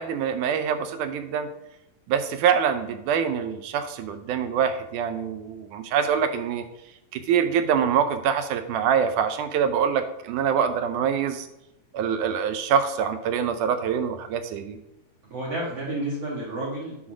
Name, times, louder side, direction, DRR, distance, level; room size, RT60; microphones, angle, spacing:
voice 1, 0.0-1.5 2.1-6.6 7.1-11.5 11.9-14.8, right 7 dB, 80° right, 9 dB, 2.1 m, -25 dB
voice 2, 15.2-17.1, right 1 dB, 55° right, -5 dB, 2.4 m, -31 dB
9.5 x 4.1 x 6.1 m, 0.86 s
omnidirectional pair, 3.7 m